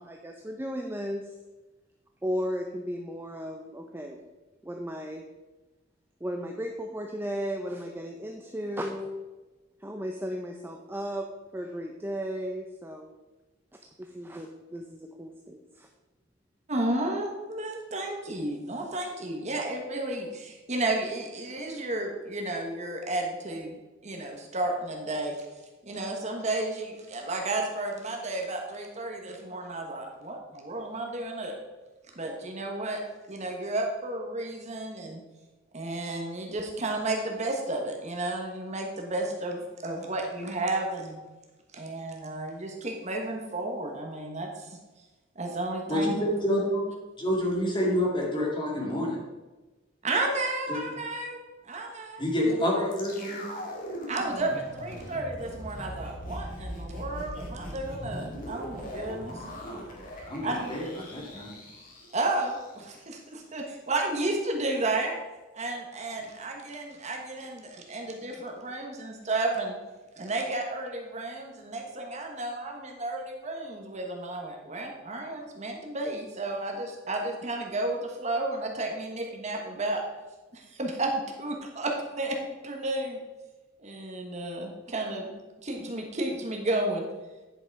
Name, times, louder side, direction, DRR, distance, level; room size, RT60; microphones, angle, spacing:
voice 1, 0.0-1.3 2.2-4.2 4.6-5.2 6.2-9.2 9.8-13.1 14.0-15.9, equal, 10° right, 2 dB, 0.6 m, -35 dB
voice 2, 16.7-23.8 24.0-25.3 25.8-31.6 32.1-33.0 33.3-35.2 35.7-41.2 41.7-44.8 45.3-46.1 50.0-51.4 51.6-52.2 52.6-52.8 54.1-59.4 60.4-60.6 62.1-65.1 65.5-69.8 70.2-80.0 80.5-81.1 81.4-83.2 83.8-85.3 85.6-87.1, right 2 dB, 35° right, 2 dB, 1.3 m, -32 dB
voice 3, 45.9-46.8 47.2-49.2 50.7-50.8 52.2-53.5 59.7-59.9 60.2-61.5, left 1 dB, 25° left, -3 dB, 2.7 m, -28 dB
sound 1, 52.9-63.0 63.3-63.4, equal, 45° left, 2.0 m, -40 dB
10.0 x 5.9 x 4.7 m, 1.1 s
head